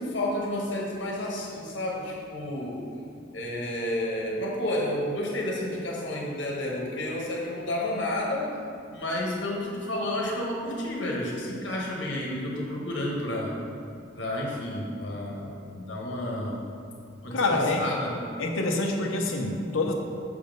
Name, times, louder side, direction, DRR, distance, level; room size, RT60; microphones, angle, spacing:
voice 1, 0.0-2.8 3.3-8.5 8.9-13.5 14.1-16.6 17.2-18.2, left 1 dB, 65° left, -3 dB, 1.3 m, -31 dB
voice 2, 17.3-17.8 18.4-19.9, left 2 dB, 85° left, 2 dB, 0.7 m, -26 dB
6.7 x 3.7 x 5.2 m, 2.4 s
head